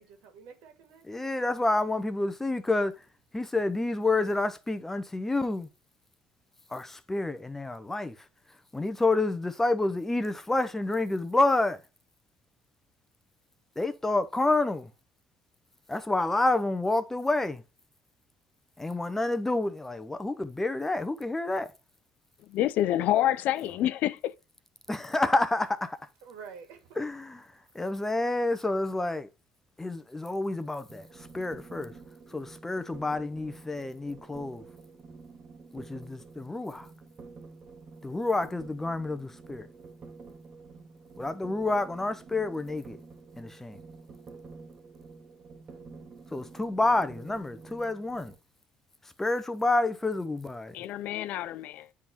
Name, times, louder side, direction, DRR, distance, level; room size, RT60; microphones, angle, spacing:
voice 1, 0.0-1.7 26.2-27.1 27.5-27.8, right 6 dB, 85° right, 1.9 m, -50 dB
voice 2, 1.1-2.9 3.3-5.7 6.7-8.3 8.7-11.8 13.8-14.9 15.9-17.6 18.8-21.7 24.9-26.0 27.0-29.3 29.8-31.9 32.3-34.6 35.7-36.9 38.0-39.7 41.2-43.0 43.4-43.8 46.3-48.3 49.0-50.7, left 2 dB, 10° left, 0.7 m, -29 dB
voice 3, 22.5-24.3 50.7-51.9, left 12 dB, 70° left, 0.4 m, -27 dB
sound 1, 30.9-48.4, right 4 dB, 40° right, 1.6 m, -49 dB
9.6 x 3.6 x 2.9 m
cardioid pair, 100°, 3 cm